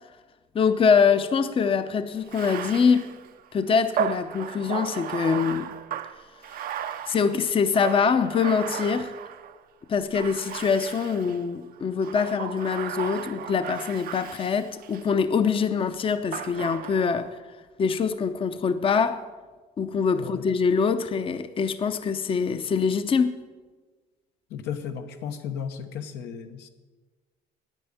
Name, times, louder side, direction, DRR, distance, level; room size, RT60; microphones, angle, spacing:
voice 1, 0.5-3.2 3.5-5.7 7.1-9.1 9.9-17.4 17.8-19.2 19.8-23.4, left 6 dB, 30° left, 0.7 m, -24 dB
Bathtub (filling or washing), 2.2-9.6 10.1-11.4 12.0-15.2 16.3-17.3, right 9 dB, 60° right, 0.7 m, -35 dB
voice 2, 24.5-26.7, left 7 dB, 85° left, 1.1 m, -34 dB
9.5 x 9.1 x 8.6 m
cardioid pair, 110°, 17 cm